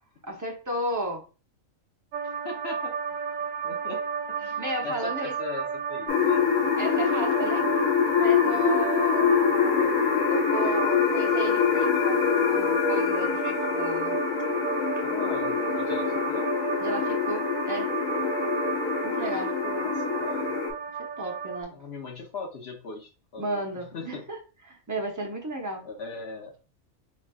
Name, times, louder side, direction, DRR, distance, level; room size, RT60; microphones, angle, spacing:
voice 1, 0.2-1.2 4.4-5.4 6.8-7.7 8.2-9.9 10.3-12.2 12.5-14.2 16.8-17.9 19.0-19.6 21.2-21.8 23.4-24.4 24.7-25.9, right 2 dB, 20° right, 0.5 m, -34 dB
sound 1, 2.1-21.6, right 6 dB, 75° right, 1.0 m, -33 dB
voice 2, 2.4-2.9 3.6-4.0 4.4-6.5 15.0-16.4 19.3-20.5 21.7-24.2 25.8-26.5, left 4 dB, 55° left, 1.0 m, -39 dB
sound 2, 6.1-20.7, left 7 dB, 90° left, 1.2 m, -25 dB
3.9 x 3.1 x 2.3 m
omnidirectional pair, 1.4 m